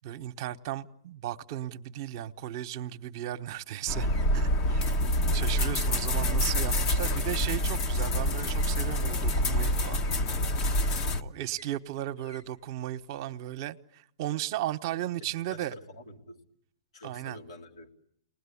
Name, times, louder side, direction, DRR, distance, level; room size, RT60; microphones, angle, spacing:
voice 1, 0.0-5.0 5.3-10.0 11.2-15.8 17.0-17.4, right 13 dB, 50° right, 1.1 m, -35 dB
sound 1, 3.2-7.9 8.2-13.1, left 1 dB, 65° left, 6.4 m, -55 dB
sound 2, 3.9-11.2, left 1 dB, 35° left, 1.4 m, -27 dB
voice 2, 15.2-16.4 16.9-17.9, left 1 dB, 80° left, 3.3 m, -47 dB
30.0 x 20.0 x 8.5 m
hypercardioid pair, 125°, 3 cm